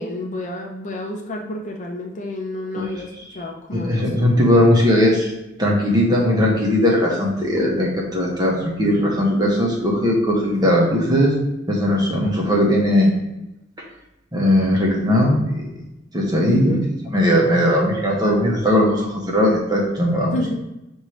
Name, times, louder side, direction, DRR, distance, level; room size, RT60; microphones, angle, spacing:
voice 1, 0.0-4.1 16.5-16.8 20.3-20.5, left 1 dB, 40° left, 1 dB, 0.6 m, -29 dB
voice 2, 3.7-5.3 5.6-11.3 11.7-13.1 14.3-15.7 16.1-16.8 17.1-20.4, left 1 dB, 20° right, -2 dB, 1.1 m, -18 dB
6.2 x 2.7 x 3.1 m, 0.94 s
head